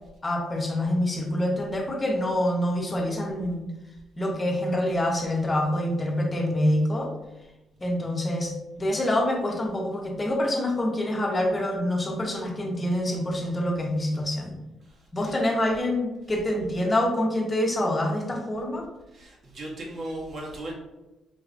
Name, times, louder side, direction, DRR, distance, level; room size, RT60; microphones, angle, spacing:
voice 1, 0.2-3.7 4.2-7.1 7.8-14.5 15.1-18.8, left 1 dB, 25° left, 0 dB, 0.9 m, -26 dB
voice 2, 14.9-15.3 19.1-20.7, right 1 dB, 55° right, -3 dB, 1.3 m, -37 dB
5.4 x 2.9 x 2.6 m, 1.0 s
cardioid pair, 90°, 0 cm